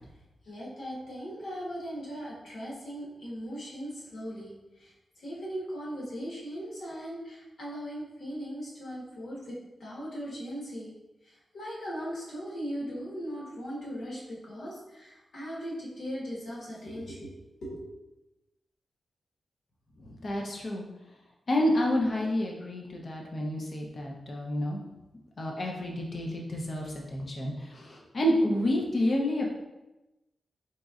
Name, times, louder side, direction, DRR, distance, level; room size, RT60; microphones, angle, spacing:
voice 1, 0.4-10.9 11.2-17.3 17.6-17.8, equal, 70° left, -5 dB, 1.4 m, -39 dB
voice 2, 20.0-20.8 21.5-24.8 25.4-29.5, left 1 dB, 45° left, -1 dB, 0.7 m, -29 dB
4.1 x 3.8 x 2.4 m, 1.0 s
wide cardioid pair, 145°, 0 cm